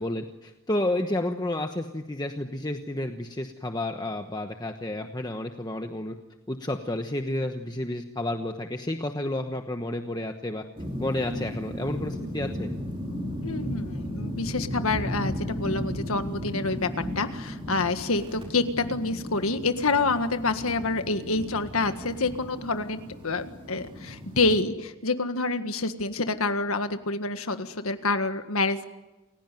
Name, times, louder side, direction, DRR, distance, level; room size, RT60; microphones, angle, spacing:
voice 1, 0.0-6.2 6.5-10.6 11.0-12.7, left 1 dB, 20° left, 5 dB, 1.1 m, -31 dB
sound 1, 10.8-24.6, equal, 25° right, 4.8 m, -35 dB
voice 2, 13.4-16.9 17.2-28.9, left 3 dB, 85° left, 8 dB, 1.8 m, -27 dB
29.0 x 16.5 x 9.3 m, 1.1 s
head